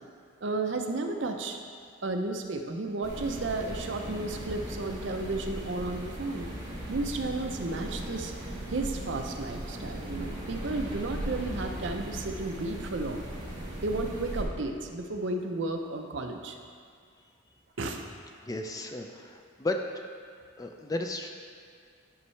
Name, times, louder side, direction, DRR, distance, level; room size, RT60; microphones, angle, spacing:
voice 1, 0.4-1.6 2.0-6.5 6.9-8.3 8.7-13.3 13.8-16.6 17.8-18.0, right 2 dB, 60° right, 4 dB, 0.6 m, -33 dB
sound 1, 3.0-14.4, right 1 dB, 20° right, 1.4 m, -38 dB
voice 2, 18.4-19.8 20.6-21.3, left 2 dB, 15° left, 4 dB, 0.3 m, -34 dB
11.0 x 5.5 x 3.2 m, 2.1 s
head